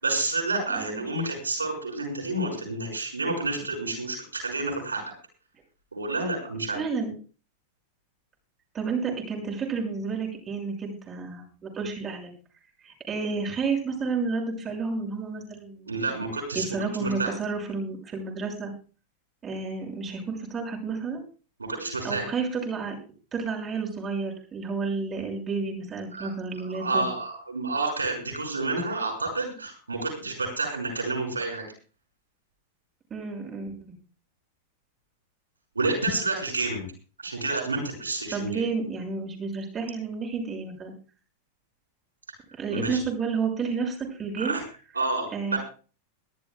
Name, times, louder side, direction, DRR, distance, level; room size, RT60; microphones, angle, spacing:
voice 1, 0.0-5.0 5.9-6.8 15.9-16.7 17.0-17.3 21.6-22.3 26.1-26.3 26.7-31.6 35.7-36.9 37.2-38.6 42.7-43.0 44.4-44.6 44.9-45.6, right 2 dB, 80° right, 1 dB, 5.9 m, -29 dB
voice 2, 0.7-1.0 6.7-7.1 8.7-12.3 12.8-16.2 16.5-18.7 19.4-21.2 22.0-22.9 23.3-27.1 33.1-33.7 38.3-40.9 42.6-44.6 45.3-45.6, right 4 dB, 20° right, 0 dB, 6.1 m, -31 dB
23.0 x 13.5 x 2.4 m, 0.37 s
figure-of-eight pair, 90°, 0 cm